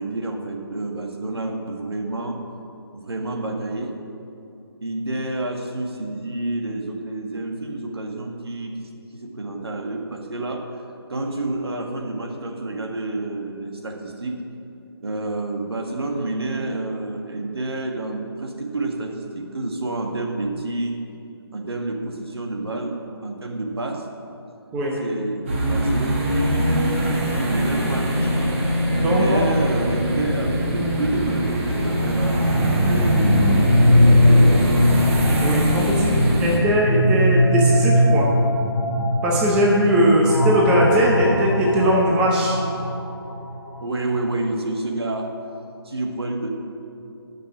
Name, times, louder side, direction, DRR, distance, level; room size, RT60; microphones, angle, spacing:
voice 1, 0.0-2.4 2.9-4.0 4.8-10.8 11.1-14.4 15.0-21.0 21.5-24.1 24.4-24.5 25.0-28.6 29.1-33.5 34.0-34.7 43.8-45.5 45.8-46.5, right 2 dB, 70° right, 2 dB, 1.6 m, -29 dB
sound 1, 25.5-36.6, right 1 dB, 30° right, 1.8 m, -22 dB
voice 2, 29.0-29.4 35.4-38.3 39.2-42.5, equal, 5° right, -4 dB, 0.7 m, -19 dB
sound 2, 32.2-44.1, left 1 dB, 10° left, 1.3 m, -21 dB
13.5 x 5.9 x 6.0 m, 2.7 s
figure-of-eight pair, 160°, 14 cm